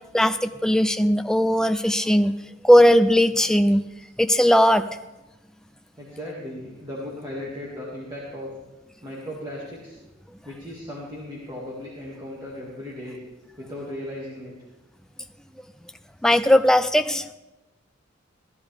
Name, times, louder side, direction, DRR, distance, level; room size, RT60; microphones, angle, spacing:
voice 1, 0.1-2.4 2.6-3.8 4.2-4.8 16.2-17.3, equal, 5° left, 9 dB, 0.4 m, -18 dB
voice 2, 6.0-8.5 9.0-10.0 10.4-13.2 13.6-14.5, left 1 dB, 20° right, -6 dB, 2.1 m, -36 dB
15.5 x 12.0 x 3.4 m, 1.0 s
head